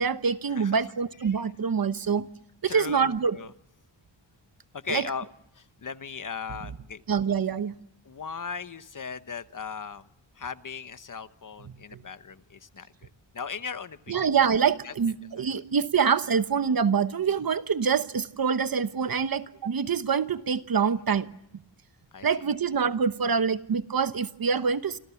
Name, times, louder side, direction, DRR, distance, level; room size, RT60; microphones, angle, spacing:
voice 1, 0.0-2.3 2.6-3.4 4.9-5.1 7.1-7.8 11.9-12.0 14.1-21.3 22.2-25.0, right 6 dB, 50° right, 12 dB, 1.0 m, -25 dB
voice 2, 2.7-3.5 4.7-5.3 5.5-7.0 8.0-10.1 10.3-14.3 14.8-14.9 15.4-15.5 22.1-22.5, left 6 dB, 45° left, 12 dB, 1.0 m, -38 dB
27.5 x 27.0 x 7.1 m, 0.80 s
wide cardioid pair, 155°, 46 cm